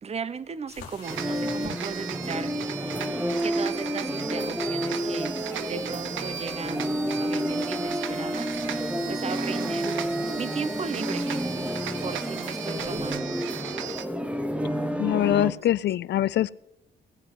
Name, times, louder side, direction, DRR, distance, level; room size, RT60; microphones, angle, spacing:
voice 1, 0.0-2.5 3.4-8.8 9.1-10.0 10.4-11.7 12.0-13.4, right 5 dB, 30° right, 16 dB, 0.9 m, -36 dB
sound 1, 0.7-13.2, left 8 dB, 85° left, 2.0 m, -50 dB
sound 2, 1.0-14.0, right 10 dB, 80° right, 0.9 m, -37 dB
sound 3, 1.1-15.5, equal, 5° right, 1.1 m, -30 dB
voice 2, 15.0-16.5, left 12 dB, 60° left, 20 dB, 0.5 m, -23 dB
18.0 x 7.8 x 6.1 m, 0.79 s
cardioid pair, 90°, 20 cm